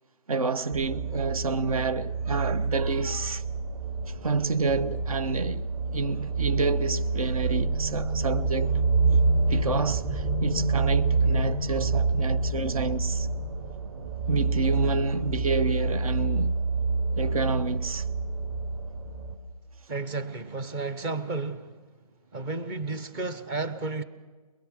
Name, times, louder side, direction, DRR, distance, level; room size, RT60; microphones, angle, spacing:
voice 1, 0.3-3.4 4.2-8.8 9.5-13.3 14.3-16.6 17.2-18.0, right 4 dB, 65° right, 1.0 m, -29 dB
sound 1, 0.7-19.4, right 3 dB, 40° right, 2.3 m, -27 dB
voice 2, 19.9-21.8 22.3-24.0, right 3 dB, 10° right, 0.6 m, -32 dB
22.0 x 22.0 x 6.2 m
hypercardioid pair, 155°, 19 cm